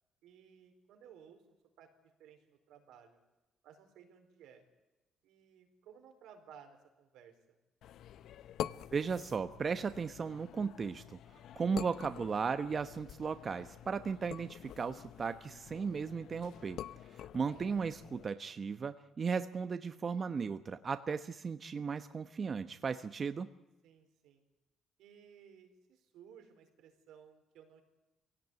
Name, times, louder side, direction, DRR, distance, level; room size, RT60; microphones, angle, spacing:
voice 1, 0.2-1.4 1.8-3.2 3.6-4.6 5.2-7.6 23.8-24.4 25.0-27.8, right 8 dB, 90° right, 5 dB, 4.5 m, -58 dB
sound 1, 7.8-18.3, left 10 dB, 80° left, 0.7 m, -47 dB
voice 2, 8.9-11.2 11.5-16.8 17.1-23.5, right 5 dB, 40° right, 10 dB, 1.0 m, -36 dB
23.0 x 17.5 x 9.4 m, 1.1 s
cardioid pair, 90°, 0 cm